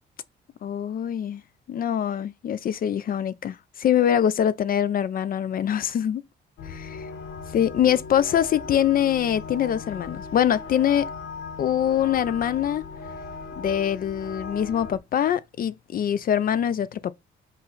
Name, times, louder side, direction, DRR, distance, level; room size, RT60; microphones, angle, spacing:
voice 1, 0.6-1.4 1.7-6.2 7.5-11.1 11.6-12.8 13.6-17.1, left 9 dB, 45° left, 0.4 m, -24 dB
sound 1, 6.6-15.0, left 4 dB, 85° left, 0.9 m, -38 dB
5.3 x 2.1 x 3.8 m
cardioid pair, 90°, 20 cm